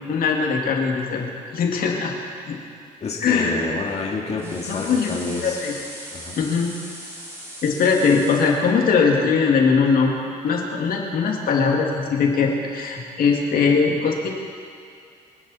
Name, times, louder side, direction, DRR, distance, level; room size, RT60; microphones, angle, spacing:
voice 1, 0.1-1.3 1.5-2.1 2.4-2.6 3.2-3.6 4.7-5.1 5.4-5.7 6.4-6.7 7.6-14.3, left 5 dB, 65° left, 0 dB, 2.2 m, -20 dB
voice 2, 3.0-5.8 6.1-6.4, left 4 dB, 40° left, -1 dB, 2.0 m, -29 dB
sound 1, 4.4-8.6, equal, 15° right, 4.1 m, -38 dB
24.0 x 10.0 x 4.2 m, 2.3 s
cardioid pair, 95°, 16 cm